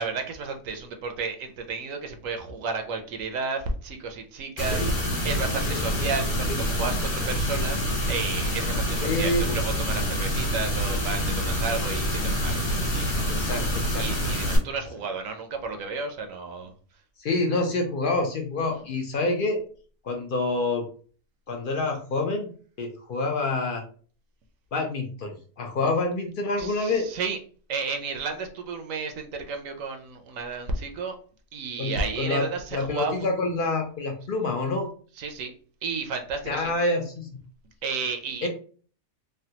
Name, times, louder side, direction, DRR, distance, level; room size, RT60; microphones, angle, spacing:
voice 1, 0.0-13.4 14.0-16.7 18.6-18.8 25.8-25.9 26.6-27.4 27.7-31.1 31.5-33.3 35.2-35.5 35.8-36.7 37.8-38.5, right 4 dB, 75° right, 5 dB, 1.0 m, -32 dB
sound 1, 4.6-14.6, equal, 40° left, 1.2 m, -27 dB
voice 2, 9.0-9.6 13.3-14.0 17.2-19.6 20.0-20.8 21.5-23.8 24.7-27.1 31.8-34.9 36.5-37.3 38.4-38.5, left 2 dB, 65° left, 3 dB, 0.5 m, -27 dB
3.3 x 2.2 x 2.8 m, 0.42 s
omnidirectional pair, 1.4 m